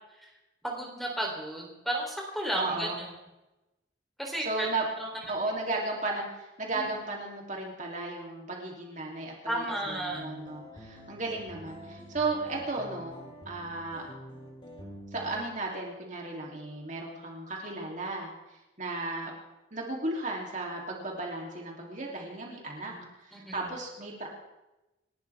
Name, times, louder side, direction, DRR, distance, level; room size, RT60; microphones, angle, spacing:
voice 1, 0.6-3.1 4.2-4.7 5.0-5.4 6.7-6.9 9.5-10.3 22.9-23.1 23.3-23.7, right 1 dB, ahead, -1 dB, 3.5 m, -34 dB
voice 2, 2.6-3.0 4.4-4.8 5.3-13.2 13.4-14.1 15.1-18.3 18.8-19.3 19.7-22.9 23.2-24.3, right 2 dB, 40° right, -1 dB, 3.2 m, -35 dB
sound 1, 10.1-15.5, equal, 25° left, 3.3 m, -46 dB
29.0 x 12.5 x 3.6 m, 0.99 s
head